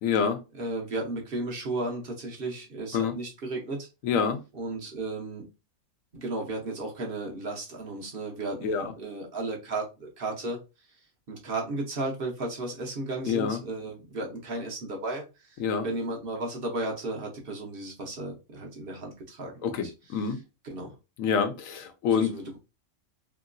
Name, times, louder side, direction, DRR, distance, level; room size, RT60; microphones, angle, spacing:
voice 1, 0.0-0.4 2.9-3.1 4.0-4.4 8.6-8.9 13.3-13.6 15.6-15.9 19.6-20.4 21.2-22.3, left 6 dB, 90° left, 1.0 m, -26 dB
voice 2, 0.5-3.9 4.5-5.5 6.1-10.6 11.3-20.9 22.1-22.6, right 2 dB, 50° right, 1.0 m, -34 dB
2.9 x 2.8 x 2.5 m
omnidirectional pair, 1.3 m